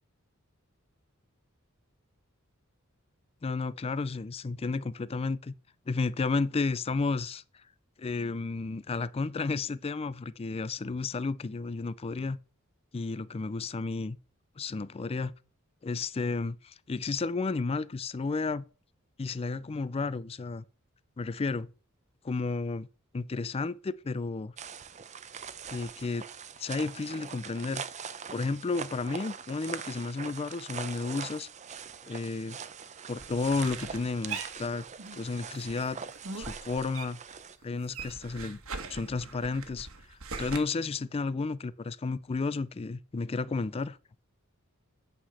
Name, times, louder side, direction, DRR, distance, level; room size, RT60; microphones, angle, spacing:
voice 1, 3.4-5.5 5.9-7.4 8.0-12.4 12.9-14.2 14.6-15.3 15.8-18.6 19.2-20.6 21.2-21.7 22.2-22.9 23.1-24.5 25.7-26.2 26.6-27.8 28.3-31.5 32.1-32.6 33.1-34.9 35.1-36.0 36.4-37.2 37.6-38.6 38.9-44.0, left 3 dB, 25° left, 0.4 m, -32 dB
sound 1, 24.6-37.6, right 7 dB, 35° right, 0.6 m, -42 dB
sound 2, 33.1-35.2 35.5-37.4 37.6-40.6, right 4 dB, 70° right, 1.4 m, -41 dB
9.0 x 5.7 x 6.3 m
head